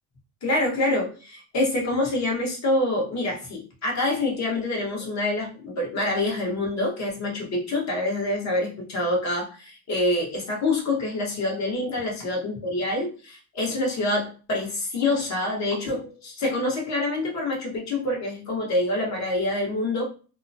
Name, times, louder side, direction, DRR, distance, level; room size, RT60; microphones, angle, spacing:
voice 1, 0.4-20.0, left 2 dB, 50° left, -2 dB, 1.4 m, -26 dB
2.8 x 2.2 x 2.7 m, 0.37 s
supercardioid pair, 95°, 36 cm